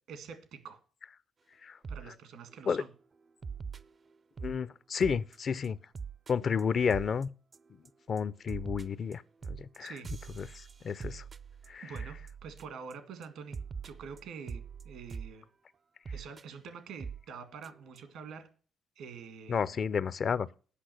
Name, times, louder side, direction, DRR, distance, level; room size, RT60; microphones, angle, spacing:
voice 1, 0.1-0.8 1.9-2.9 9.8-10.1 10.4-10.5 11.8-12.2 12.4-13.6 13.8-15.5 16.1-18.5 19.0-20.1, right 6 dB, 80° right, 1.8 m, -46 dB
sound 1, 1.8-2.1 2.5-2.7 3.4-4.6 5.0-5.4 5.6-5.7 5.9-6.3 6.6-6.7 6.9-7.2 7.5-7.9 8.2-12.9 13.2-13.3 13.5-15.3 16.1-16.4 17.0-17.2 17.6-17.7 18.0-18.1, right 5 dB, 40° right, 0.4 m, -42 dB
voice 2, 4.4-5.8 6.3-7.3 8.1-9.2 9.5-9.9 10.4-10.5 10.8-11.2 11.7-11.9 19.5-20.5, left 6 dB, 50° left, 0.4 m, -31 dB
8.4 x 5.9 x 7.7 m
cardioid pair, 90°, 0 cm